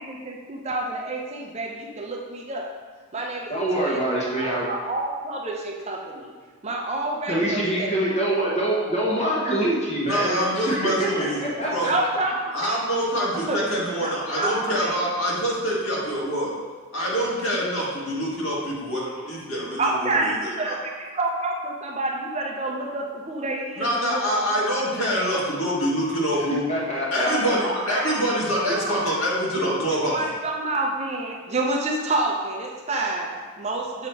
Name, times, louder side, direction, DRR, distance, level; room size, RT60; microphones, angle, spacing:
voice 1, 0.0-2.7 3.1-6.3 6.6-7.9 11.6-12.8 13.3-13.6 14.0-14.9 19.8-24.4 25.0-25.1 27.2-28.1 28.7-29.1 29.5-29.8 30.1-34.1, right 2 dB, 30° right, -1 dB, 0.5 m, -28 dB
voice 2, 3.5-4.7 7.3-12.1 26.7-27.6, right 1 dB, 30° left, -5 dB, 1.2 m, -25 dB
voice 3, 10.0-11.4 11.7-11.9 12.5-16.5 16.9-20.8 23.8-26.7 27.1-30.2, equal, 70° left, -5 dB, 1.7 m, -25 dB
7.3 x 3.0 x 4.5 m, 1.5 s
head